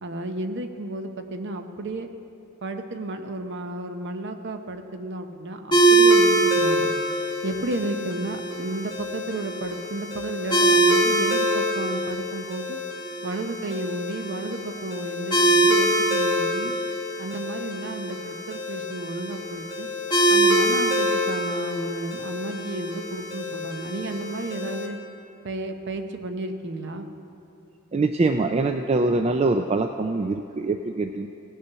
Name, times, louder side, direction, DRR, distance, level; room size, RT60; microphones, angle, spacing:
voice 1, 0.0-2.1 2.6-6.9 7.4-12.8 13.2-16.7 17.2-19.9 20.3-25.0 25.4-27.1, right 2 dB, 55° right, 7 dB, 0.8 m, -32 dB
sound 1, 5.7-24.9, right 1 dB, 20° left, 1.4 m, -24 dB
voice 2, 27.9-31.3, right 3 dB, 30° right, 6 dB, 0.3 m, -23 dB
17.5 x 6.8 x 5.6 m, 3.0 s
head